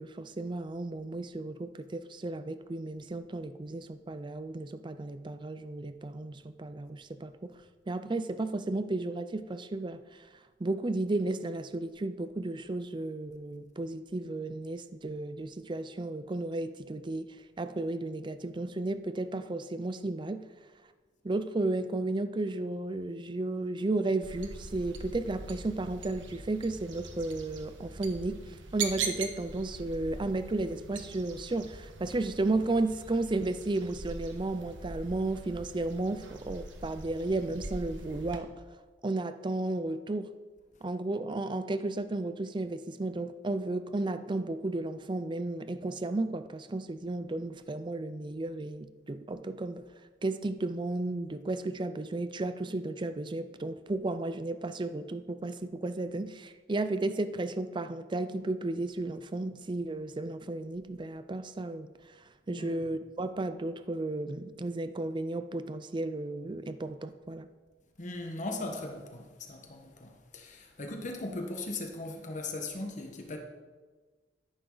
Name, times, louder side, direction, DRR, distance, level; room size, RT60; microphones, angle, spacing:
voice 1, 0.0-7.5 7.9-10.3 10.6-20.4 21.2-38.5 39.0-40.3 40.8-49.8 50.2-61.9 62.5-67.5, right 2 dB, 25° right, 0.5 m, -33 dB
sound 1, 24.2-38.4, right 4 dB, 90° right, 1.4 m, -42 dB
voice 2, 62.5-62.9 68.0-73.4, left 2 dB, 40° left, 1.4 m, -39 dB
13.0 x 11.0 x 4.0 m
head